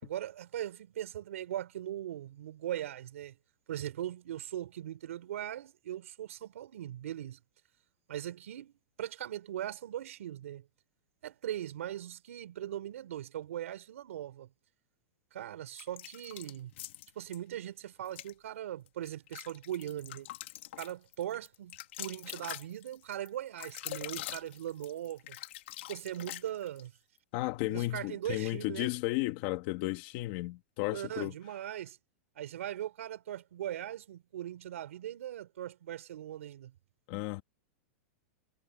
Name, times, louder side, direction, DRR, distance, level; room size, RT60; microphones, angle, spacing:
voice 1, 0.0-3.4 3.7-7.4 8.1-10.7 11.2-14.5 15.3-16.7 17.1-20.3 20.8-25.4 25.9-26.9 27.7-28.9 30.9-32.0 32.3-36.7, right 12 dB, 80° right, 4.6 m, -40 dB
sound 1, 15.7-17.4 18.0-18.3 18.9-26.9, left 15 dB, 55° left, 2.3 m, -44 dB
voice 2, 27.3-31.3 37.1-37.4, left 19 dB, 35° left, 2.1 m, -34 dB
supercardioid pair, 175°, 7 cm